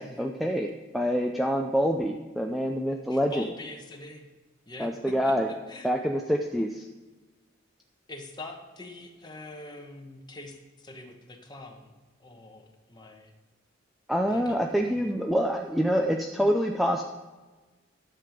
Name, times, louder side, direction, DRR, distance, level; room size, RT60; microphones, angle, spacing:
voice 1, 0.0-3.4 4.8-5.5 5.8-6.9 14.1-17.0, equal, ahead, 2 dB, 0.4 m, -26 dB
voice 2, 3.1-4.3 4.6-5.9 8.1-13.3 14.3-15.0, left 2 dB, 20° left, 3 dB, 1.2 m, -44 dB
11.0 x 7.7 x 5.0 m, 1.3 s
head